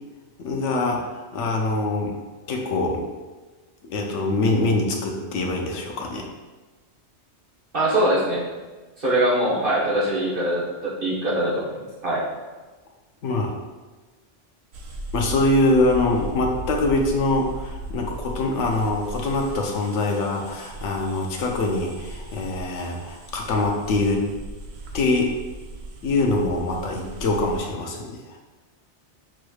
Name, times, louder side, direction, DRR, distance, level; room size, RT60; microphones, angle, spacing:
voice 1, 0.4-2.1 2.5-3.1 3.8-6.3 13.2-13.5 15.1-24.3 24.9-25.3 26.0-28.2, left 2 dB, 90° left, 1 dB, 1.0 m, -24 dB
voice 2, 7.7-8.5 9.0-12.2, right 1 dB, 50° right, -7 dB, 1.3 m, -23 dB
sound 1, 14.7-27.6, right 1 dB, 70° right, 0.8 m, -37 dB
6.0 x 3.1 x 2.3 m, 1.3 s
omnidirectional pair, 1.2 m